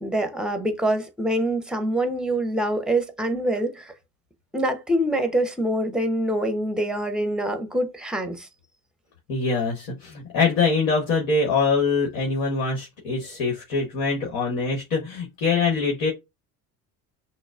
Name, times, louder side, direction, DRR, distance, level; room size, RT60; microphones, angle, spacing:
voice 1, 0.0-3.9 4.5-8.5, right 1 dB, ahead, 0.7 m, -25 dB
voice 2, 9.3-16.1, left 4 dB, 70° left, 1.3 m, -24 dB
6.1 x 2.1 x 2.4 m
hypercardioid pair, 75°, 44 cm